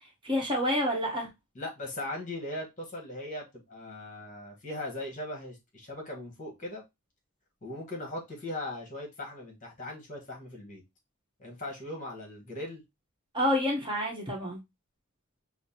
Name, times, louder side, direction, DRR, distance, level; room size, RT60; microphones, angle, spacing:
voice 1, 0.2-1.3 13.3-14.6, left 1 dB, 25° right, 1.0 m, -28 dB
voice 2, 1.5-6.8 7.6-10.8 11.4-12.8, left 1 dB, 35° left, 1.3 m, -39 dB
5.7 x 2.1 x 2.8 m
head